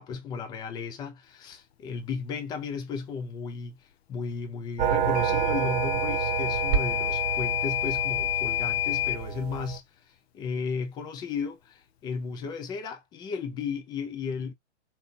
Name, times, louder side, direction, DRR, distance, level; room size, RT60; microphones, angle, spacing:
voice 1, 0.0-14.5, left 5 dB, 10° left, 0.4 m, -35 dB
sound 1, 4.8-9.8, right 8 dB, 25° right, 1.5 m, -29 dB
Microwave oven / Alarm, 5.1-9.2, left 16 dB, 60° left, 0.7 m, -29 dB
3.4 x 2.9 x 2.5 m
hypercardioid pair, 125°, 35 cm